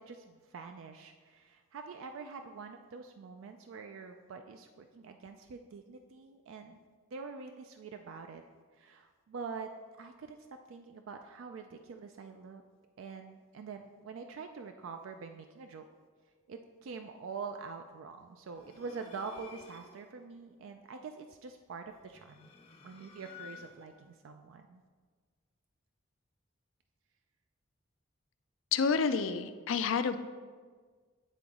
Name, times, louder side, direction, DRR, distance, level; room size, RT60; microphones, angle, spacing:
voice 1, 0.0-6.8 7.1-8.4 8.7-9.7 10.0-10.4 10.7-12.6 13.0-15.8 16.5-22.5 22.8-24.8, right 5 dB, 80° right, 6 dB, 0.4 m, -45 dB
sound 1, 18.5-20.1 22.0-24.0, left 6 dB, 30° left, 0.6 m, -53 dB
voice 2, 28.7-30.2, left 5 dB, 75° left, 11 dB, 0.4 m, -29 dB
9.2 x 3.9 x 3.6 m, 1.5 s
head